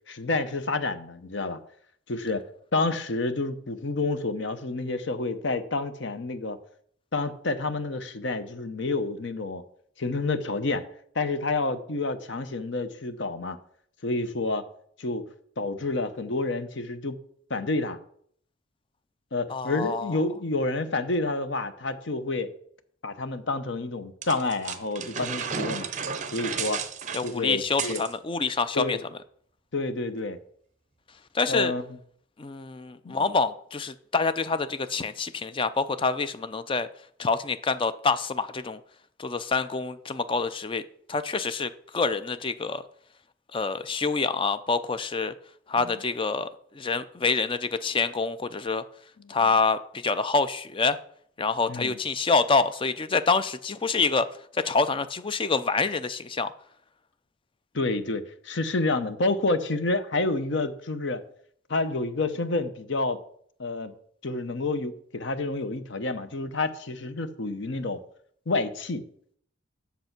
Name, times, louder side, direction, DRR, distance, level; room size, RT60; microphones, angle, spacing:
voice 1, 0.1-1.6 2.1-6.6 7.1-9.6 10.0-10.8 11.1-13.6 14.0-14.7 15.0-15.2 15.6-17.2 17.5-18.0 19.3-22.5 23.0-25.9 26.3-26.8 27.2-28.0 28.7-29.0 29.7-30.4 31.5-31.8 33.0-33.3 45.8-45.9 49.2-49.3 51.7-52.0 57.7-61.2 61.7-63.2 63.6-63.9 64.2-68.0 68.5-69.1, left 2 dB, 60° left, 0.8 m, -29 dB
voice 2, 19.5-20.1 27.1-29.0 31.3-31.7 32.4-36.9 37.2-38.8 39.2-40.8 41.1-42.8 43.5-45.3 45.7-48.8 49.3-51.0 51.4-54.3 54.5-56.5, left 4 dB, 25° left, 0.4 m, -26 dB
sound 1, 24.2-28.1, right 6 dB, 35° right, 0.7 m, -33 dB
7.9 x 6.9 x 5.9 m
head